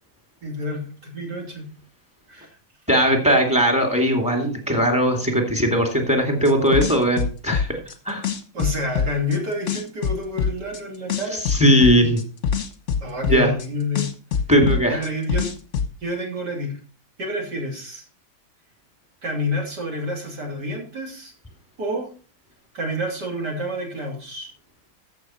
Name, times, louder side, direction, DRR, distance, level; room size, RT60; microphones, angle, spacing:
voice 1, 0.4-1.7 2.3-2.6 8.5-11.4 13.0-14.1 14.9-15.5 16.0-16.7 17.2-18.0 19.2-21.3 21.8-22.1 22.7-24.5, left 1 dB, 55° right, 0 dB, 3.5 m, -28 dB
voice 2, 2.9-7.8 8.1-8.2 11.5-12.2 13.3-13.5 14.5-15.0, equal, 5° right, 2 dB, 2.2 m, -19 dB
sound 1, 6.4-7.9 8.2-9.4 9.7-10.8 11.1-13.7 13.9-15.9, left 6 dB, 45° left, 1.2 m, -24 dB
14.0 x 6.6 x 4.3 m, 0.39 s
omnidirectional pair, 2.2 m